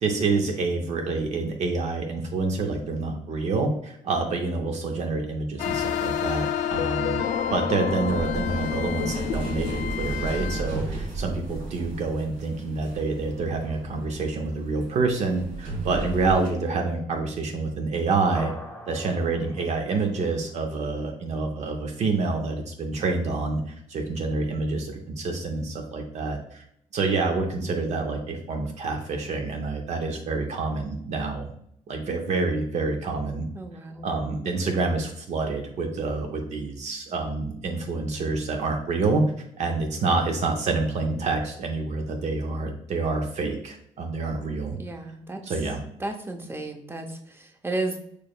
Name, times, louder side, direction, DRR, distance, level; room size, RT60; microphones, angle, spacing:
voice 1, 0.0-7.2 7.5-18.5 18.9-23.6 23.9-26.6 26.9-31.5 31.9-33.5 34.0-39.2 39.6-44.8 45.5-45.8, right 3 dB, 60° right, 3 dB, 0.6 m, -27 dB
sound 1, 5.6-10.6, left 8 dB, 80° left, 0.4 m, -28 dB
sound 2, 7.7-16.5, right 3 dB, 75° right, 1.4 m, -35 dB
sound 3, 18.3-21.0, left 1 dB, 15° left, 0.9 m, -43 dB
voice 2, 33.5-34.1 44.8-45.6 46.0-48.0, right 2 dB, 20° right, 4 dB, 0.6 m, -33 dB
4.6 x 3.2 x 2.3 m, 0.70 s
cardioid pair, 90°, 13 cm